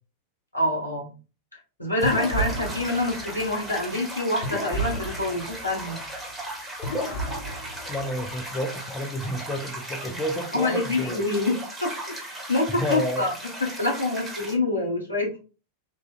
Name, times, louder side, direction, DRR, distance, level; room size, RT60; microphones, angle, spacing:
voice 1, 0.5-1.1 1.8-6.0 10.0-10.2 10.5-11.9 12.3-13.3 13.6-15.4, left 2 dB, 80° left, 1.2 m, -26 dB
sound 1, 2.0-3.9 4.4-6.3 6.8-8.5, right 1 dB, 45° left, 1.0 m, -33 dB
sound 2, 2.0-14.6, right 1 dB, ahead, 1.3 m, -37 dB
voice 2, 7.9-11.2 12.7-13.3, equal, 15° left, 0.4 m, -30 dB
3.2 x 2.4 x 2.5 m
figure-of-eight pair, 90°, 0 cm